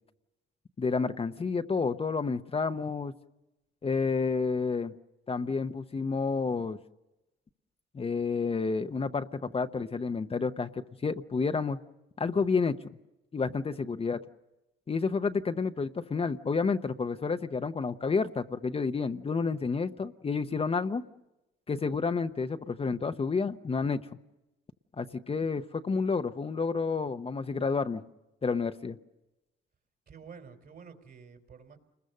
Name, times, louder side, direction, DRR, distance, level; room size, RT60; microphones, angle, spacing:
voice 1, 0.8-3.1 3.8-4.9 5.3-6.8 7.9-11.8 12.2-12.8 13.3-14.2 14.9-21.0 21.7-24.1 25.0-28.0 28.4-29.0, left 4 dB, 30° left, 8 dB, 0.8 m, -30 dB
voice 2, 30.1-31.8, right 6 dB, 55° right, 6 dB, 3.7 m, -50 dB
29.5 x 21.0 x 6.6 m, 0.97 s
cardioid pair, 90°, 20 cm